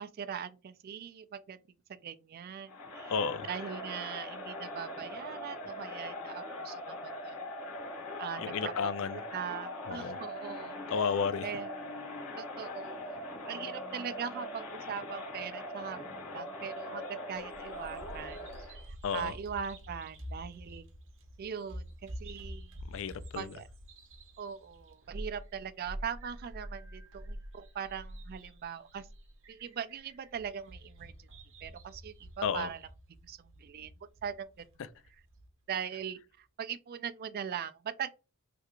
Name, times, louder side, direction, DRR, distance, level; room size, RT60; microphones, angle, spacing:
voice 1, 0.0-1.6 1.9-3.1 3.5-7.4 8.2-10.8 11.4-11.7 12.4-13.2 13.4-18.8 19.1-20.9 21.4-22.7 23.4-23.7 24.4-29.1 29.5-31.3 31.6-32.8 33.2-33.9 34.2-34.7 35.7-38.1, right 7 dB, 45° right, 0.3 m, -41 dB
Crowd, 2.7-18.8, left 1 dB, 80° left, 1.2 m, -41 dB
voice 2, 3.1-3.5 8.4-9.2 9.9-10.2 10.9-11.5 19.0-19.3 22.9-23.5 32.4-32.7, left 6 dB, 60° left, 0.4 m, -32 dB
Bird vocalization bird call bird song, 17.4-35.5, equal, 60° right, 0.7 m, -47 dB
3.4 x 2.4 x 2.9 m
head